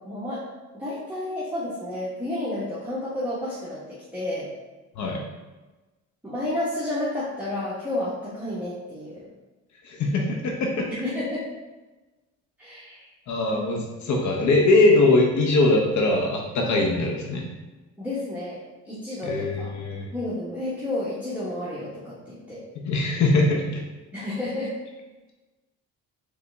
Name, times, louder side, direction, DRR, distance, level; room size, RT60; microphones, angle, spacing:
voice 1, 0.0-0.4 0.7-4.5 6.2-9.3 11.0-11.4 12.6-13.1 18.0-18.6 18.8-19.7 20.1-22.6 24.1-24.8, left 1 dB, 5° right, -10 dB, 1.2 m, -31 dB
voice 2, 4.9-5.2 9.8-10.9 13.3-17.4 19.2-20.1 22.7-23.8, left 2 dB, 70° left, 0 dB, 0.8 m, -22 dB
3.9 x 3.5 x 3.4 m, 1.2 s
cardioid pair, 90°, 30 cm